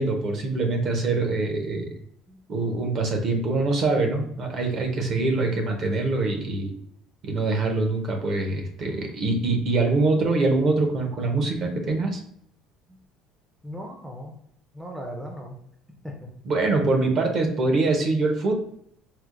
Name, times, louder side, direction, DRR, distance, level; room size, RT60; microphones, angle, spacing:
voice 1, 0.0-1.9 2.5-6.7 7.2-12.2 16.4-18.5, right 3 dB, 45° right, 3 dB, 0.7 m, -24 dB
voice 2, 13.6-14.3 14.7-15.6 16.0-16.3, equal, 5° right, 0 dB, 0.4 m, -37 dB
4.3 x 2.1 x 2.4 m, 0.69 s
cardioid pair, 140°, 0 cm